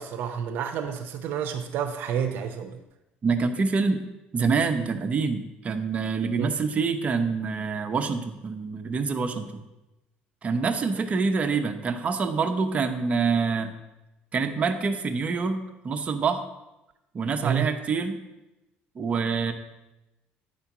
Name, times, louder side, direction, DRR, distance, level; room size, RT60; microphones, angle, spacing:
voice 1, 0.0-2.8 6.4-6.5 17.4-17.7, right 8 dB, 70° right, 5 dB, 0.7 m, -29 dB
voice 2, 3.2-4.0 4.3-9.6 10.4-13.7 14.3-16.4 17.1-18.2 18.9-19.5, right 4 dB, 35° right, 5 dB, 0.9 m, -26 dB
9.2 x 4.3 x 6.0 m, 0.96 s
cardioid pair, 115°, 4 cm